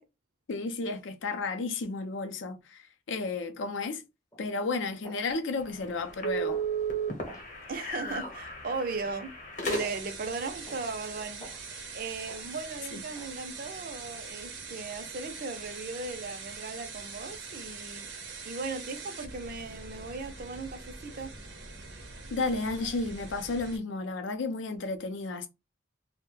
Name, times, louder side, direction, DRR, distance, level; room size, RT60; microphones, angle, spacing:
voice 1, 0.5-4.0 4.4-6.6 12.9-13.0 22.3-25.5, left 3 dB, 75° left, 0.5 m, -32 dB
sound 1, 4.3-4.5 5.0-5.3 5.8-6.0 6.5-6.7 7.3-7.5 8.2-8.4 9.0-9.2 9.8-10.0 10.7-10.9 11.4-11.7 12.3-12.5 13.2-13.4, equal, 15° left, 0.5 m, -49 dB
sound 2, 5.6-10.3, right 3 dB, 40° left, 0.9 m, -34 dB
voice 2, 7.7-9.3 9.6-11.5 11.9-18.1 18.4-21.3, right 4 dB, 45° right, 0.5 m, -37 dB
sound 3, 9.6-23.8, right 4 dB, 75° right, 0.7 m, -43 dB
2.3 x 2.1 x 3.1 m
head